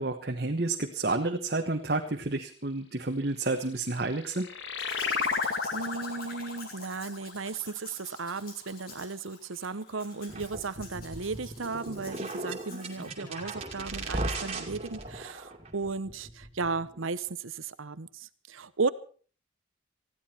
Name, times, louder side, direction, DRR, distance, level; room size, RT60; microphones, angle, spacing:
voice 1, 0.0-4.5, right 2 dB, 50° right, 3 dB, 1.2 m, -30 dB
sound 1, 3.7-8.8, left 5 dB, 65° left, 1.6 m, -34 dB
Domestic sounds home sounds, 4.8-13.5 14.1-14.2, left 4 dB, 45° left, 4.6 m, -50 dB
voice 2, 5.7-18.9, right 4 dB, 85° right, 15 dB, 1.0 m, -35 dB
sound 2, 10.3-17.1, right 2 dB, 30° right, 2.4 m, -38 dB
20.0 x 15.0 x 4.4 m, 0.41 s
head